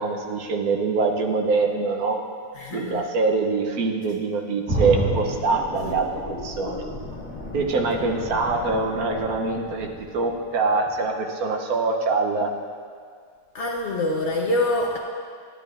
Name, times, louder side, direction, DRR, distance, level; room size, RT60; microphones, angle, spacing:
voice 1, 0.0-2.2 2.7-6.8 7.5-9.9 10.1-12.5, right 4 dB, 70° right, 2 dB, 1.2 m, -24 dB
voice 2, 2.5-3.1 5.8-5.9 13.5-15.0, left 2 dB, 60° left, 0 dB, 0.8 m, -25 dB
sound 1, 4.7-10.5 10.9-11.0, equal, 20° right, 2.5 m, -31 dB
13.0 x 10.0 x 2.5 m, 2.1 s
omnidirectional pair, 1.7 m